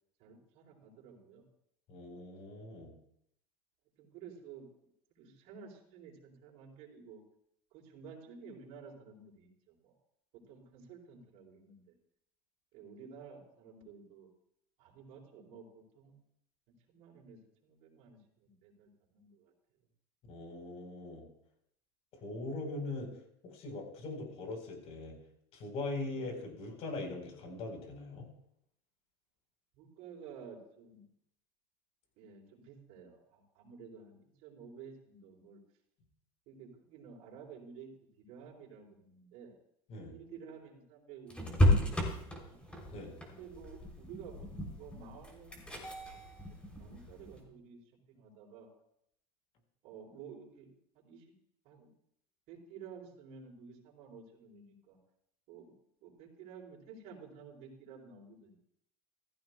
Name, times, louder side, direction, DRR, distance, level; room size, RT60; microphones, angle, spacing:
voice 1, 0.2-1.4 2.5-2.8 4.0-4.7 5.1-7.2 7.7-9.9 10.3-11.9 12.7-14.3 14.8-16.2 16.9-19.5 22.2-22.5 26.1-26.3 29.7-31.1 32.2-35.6 36.5-37.9 38.3-39.6 40.1-42.6 43.3-45.6 46.2-46.3 46.8-47.8 48.1-48.7 49.8-51.3 51.6-51.9 52.5-55.0 55.5-55.7 56.0-58.6, right 6 dB, 65° right, -3 dB, 4.5 m, -52 dB
voice 2, 1.9-2.9 20.3-21.2 22.2-23.1 23.4-25.1 25.5-28.3 39.9-40.1 42.9-43.2, left 2 dB, 50° left, 3 dB, 4.0 m, -41 dB
sound 1, 41.3-47.4, left 1 dB, 10° left, 3.1 m, -33 dB
15.5 x 14.5 x 2.3 m, 0.73 s
supercardioid pair, 115°, 14 cm